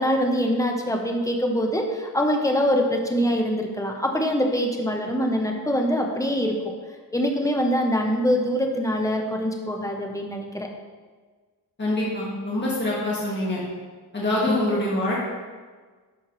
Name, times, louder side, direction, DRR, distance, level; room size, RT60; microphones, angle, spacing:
voice 1, 0.0-6.5 7.1-10.7 14.5-14.6, equal, 10° left, 2 dB, 0.9 m, -24 dB
voice 2, 11.8-13.6 14.1-15.2, left 1 dB, 25° left, -6 dB, 1.8 m, -25 dB
12.0 x 4.5 x 3.2 m, 1.4 s
wide cardioid pair, 120°, 41 cm